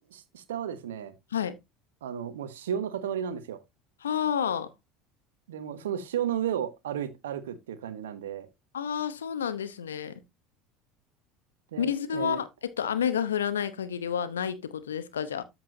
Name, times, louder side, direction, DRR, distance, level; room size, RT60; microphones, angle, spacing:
voice 1, 0.1-1.1 2.0-3.6 5.5-8.5 11.7-12.4, right 9 dB, 70° right, 1.1 m, -33 dB
voice 2, 4.0-4.7 8.7-10.2 11.8-12.5 12.8-15.4, left 8 dB, 75° left, 0.9 m, -29 dB
13.5 x 4.5 x 2.8 m
figure-of-eight pair, 70°, 0 cm